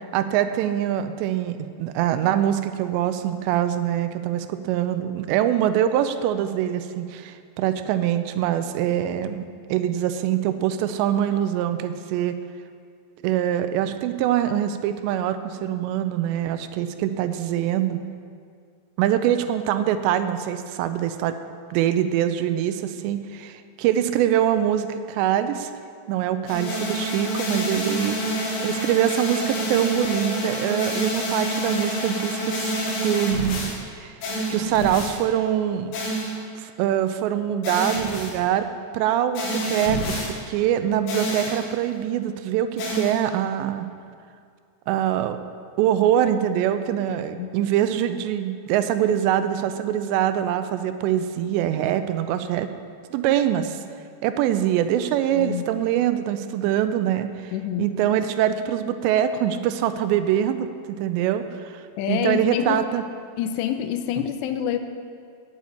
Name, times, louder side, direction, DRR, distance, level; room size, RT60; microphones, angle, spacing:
voice 1, 0.0-12.4 13.2-18.0 19.0-21.4 21.7-25.7 26.1-28.2 28.6-32.7 33.0-33.6 34.0-34.2 34.5-36.0 36.6-38.7 38.9-43.9 44.9-45.4 45.8-52.7 53.1-53.8 54.2-57.5 57.8-63.0, right 10 dB, 85° right, 10 dB, 2.8 m, -24 dB
sound 1, 26.5-33.8 34.2-35.2 35.9-36.5 37.6-38.4 39.4-40.3 41.1-41.7 42.8-43.3, right 1 dB, 65° left, 3.4 m, -27 dB
voice 2, 47.1-47.5 55.3-55.7 57.5-57.9 62.0-62.8 63.4-64.8, left 10 dB, 85° left, 8 dB, 2.7 m, -27 dB
8.9 x 8.3 x 8.5 m, 2.2 s
omnidirectional pair, 5.1 m